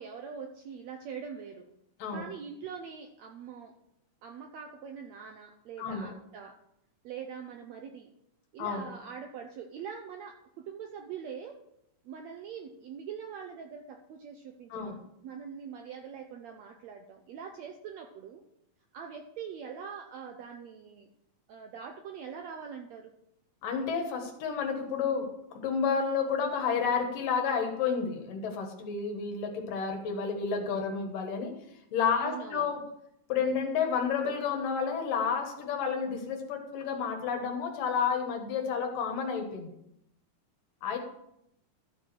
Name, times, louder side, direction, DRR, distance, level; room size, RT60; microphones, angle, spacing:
voice 1, 0.0-1.7 2.1-3.7 4.2-6.6 7.0-8.1 8.5-11.6 12.0-18.4 18.9-21.1 21.5-23.1 32.1-32.7, right 7 dB, 80° right, 4 dB, 1.6 m, -43 dB
voice 2, 5.8-6.1 8.6-8.9 14.7-15.0 23.6-31.5 31.9-32.8 33.3-39.7 40.8-41.0, left 6 dB, 80° left, 4 dB, 3.0 m, -30 dB
13.0 x 4.6 x 6.0 m, 0.78 s
omnidirectional pair, 3.9 m